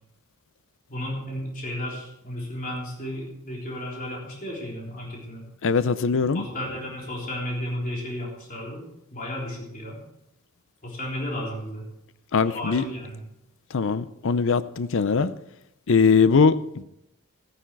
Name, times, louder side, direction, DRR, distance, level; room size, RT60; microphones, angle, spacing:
voice 1, 0.9-5.4 6.3-8.8 9.1-10.0 10.8-11.8 12.4-13.2, left 1 dB, 40° left, -3 dB, 3.6 m, -33 dB
voice 2, 5.6-6.4 12.3-12.8 13.7-15.3 15.9-16.8, left 5 dB, 60° left, 14 dB, 0.5 m, -21 dB
14.5 x 10.0 x 4.7 m, 0.82 s
head